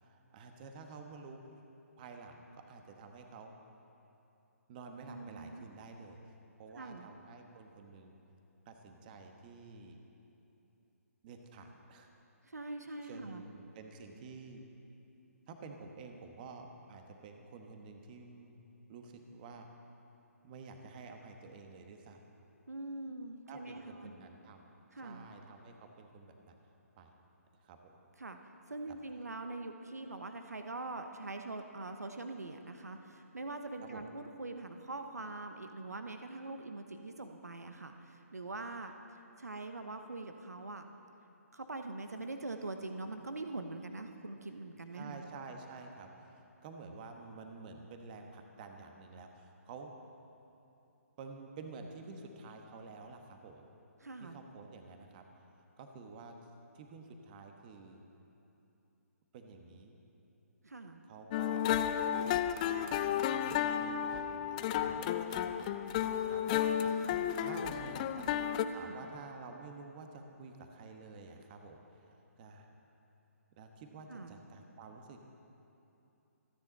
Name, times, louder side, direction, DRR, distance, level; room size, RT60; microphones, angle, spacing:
voice 1, 0.0-1.6 2.0-3.5 4.7-6.3 6.6-8.2 8.6-10.0 11.2-12.1 13.0-14.6 15.5-18.5 18.9-19.7 20.4-22.3 23.5-24.6 25.0-26.6 27.0-27.1 27.6-27.9 28.9-29.0 33.9-34.0 44.9-49.9 51.2-53.6 54.2-55.4 55.8-56.3 56.7-58.0 59.3-60.0 61.1-61.7 62.6-65.6 66.3-66.4 66.8-67.0 67.4-72.7 73.6-75.2, right 4 dB, 35° right, 4 dB, 1.4 m, -50 dB
voice 2, 5.1-5.7 6.8-7.1 12.4-13.5 22.7-24.1 24.9-25.2 28.2-28.4 28.7-38.9 39.4-40.9 41.5-45.3 54.0-54.4 60.6-61.0 67.0-67.3 68.0-69.0 74.1-74.4, right 2 dB, 85° right, 6 dB, 1.0 m, -43 dB
sound 1, 61.3-68.6, left 10 dB, 30° left, 0.5 m, -32 dB
26.5 x 10.0 x 4.2 m, 2.9 s
figure-of-eight pair, 140°, 8 cm